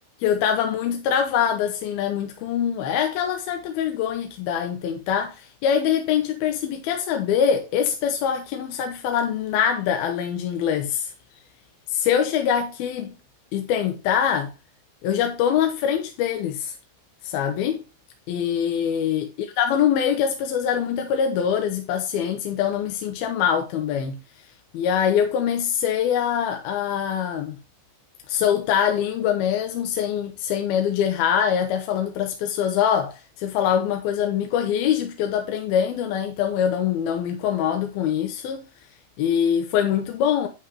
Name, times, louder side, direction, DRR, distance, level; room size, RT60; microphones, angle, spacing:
voice 1, 0.2-11.1 11.9-13.1 13.5-14.5 15.0-16.7 17.2-17.8 18.3-24.2 24.7-27.6 28.3-38.6 39.2-40.5, left 8 dB, 85° left, 2.9 m, -24 dB
9.2 x 8.1 x 3.0 m
omnidirectional pair, 4.3 m